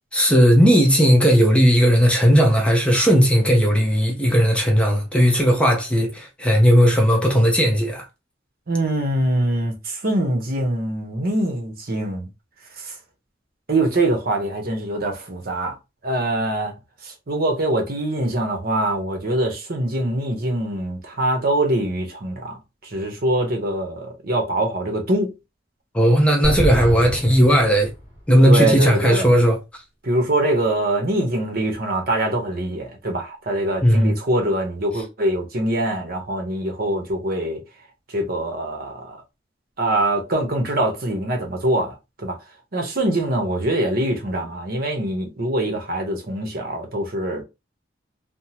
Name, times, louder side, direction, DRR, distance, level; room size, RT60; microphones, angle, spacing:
voice 1, 0.1-8.0 25.9-27.9 28.3-29.6 33.8-34.1, equal, 5° left, 0.6 m, -16 dB
voice 2, 8.7-12.3 12.8-12.9 13.7-15.8 16.0-16.8 17.0-25.3 28.4-29.3 30.0-37.6 38.1-39.2 39.8-42.4 42.7-47.4, right 1 dB, 55° right, 0.9 m, -23 dB
sound 1, 26.4-28.3, equal, 15° right, 1.8 m, -26 dB
3.5 x 2.0 x 2.8 m
head